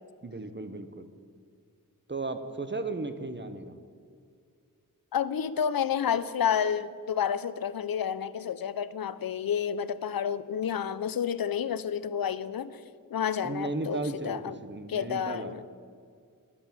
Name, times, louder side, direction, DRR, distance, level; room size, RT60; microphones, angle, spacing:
voice 1, 0.2-1.1 2.1-3.8 13.4-15.6, right 2 dB, 30° right, 9 dB, 1.0 m, -35 dB
voice 2, 5.1-12.8 13.1-14.5 14.9-15.6, left 8 dB, 85° left, 16 dB, 0.5 m, -30 dB
11.5 x 8.0 x 7.1 m, 2.2 s
cardioid pair, 40°, 34 cm